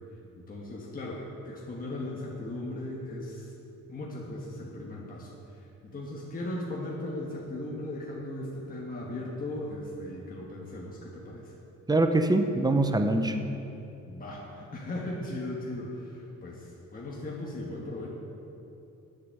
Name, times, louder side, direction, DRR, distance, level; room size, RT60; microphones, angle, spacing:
voice 1, 0.3-3.5 3.9-11.5 14.0-18.1, left 1 dB, 30° left, -3 dB, 1.4 m, -37 dB
voice 2, 11.9-13.4, right 2 dB, 15° right, 6 dB, 0.8 m, -23 dB
8.0 x 6.8 x 6.7 m, 2.8 s
cardioid pair, 90°, 30 cm